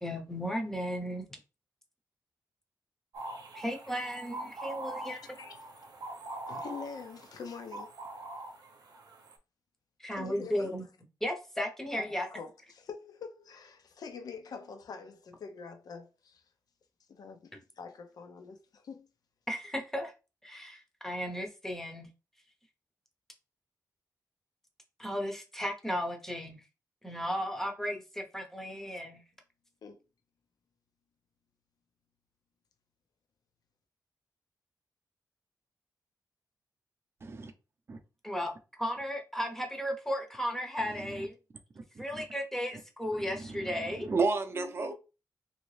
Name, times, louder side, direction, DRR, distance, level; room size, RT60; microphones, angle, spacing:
voice 1, 0.0-1.3 3.5-5.4 10.0-10.9 11.2-12.3 19.5-20.1 20.4-22.1 25.0-26.6 27.0-29.2 38.2-41.4 42.0-44.1, equal, 5° left, 0.6 m, -35 dB
sound 1, 3.1-9.4, right 2 dB, 75° right, 0.7 m, -43 dB
voice 2, 6.5-7.9 10.1-10.7 12.0-16.4 17.1-19.1 29.8-30.0 44.5-44.9, left 5 dB, 70° left, 0.6 m, -45 dB
voice 3, 37.2-37.5 37.9-38.0 40.8-40.9 41.8-42.2 43.2-44.9, right 4 dB, 35° right, 0.5 m, -33 dB
3.1 x 2.7 x 3.2 m
wide cardioid pair, 160°, 7 cm